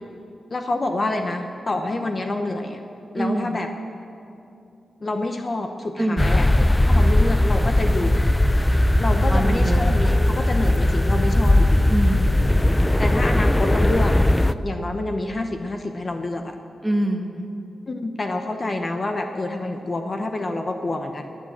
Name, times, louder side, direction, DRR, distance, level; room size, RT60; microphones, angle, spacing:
voice 1, 0.5-2.8 3.1-3.7 5.0-6.5 6.8-8.3 9.0-11.9 13.0-14.1 14.5-16.6 17.9-21.3, left 2 dB, 30° left, 5 dB, 0.9 m, -27 dB
voice 2, 3.1-3.6 6.0-6.3 9.1-9.9 11.9-12.4 16.8-17.4, right 1 dB, 5° right, 3 dB, 1.4 m, -25 dB
sound 1, 6.2-14.5, left 1 dB, 10° left, 0.4 m, -18 dB
21.5 x 9.2 x 7.4 m, 2.7 s
wide cardioid pair, 135°, 0 cm